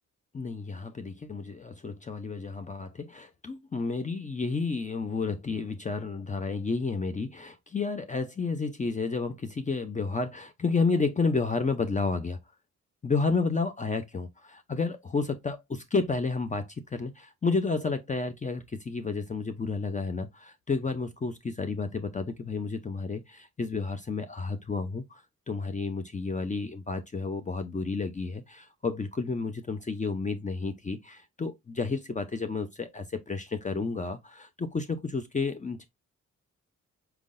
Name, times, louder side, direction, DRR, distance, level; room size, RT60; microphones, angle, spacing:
voice 1, 0.3-12.4 13.0-25.2 25.5-35.9, left 4 dB, 25° left, 0.5 m, -31 dB
4.5 x 3.8 x 2.5 m
cardioid pair, 95°, 30 cm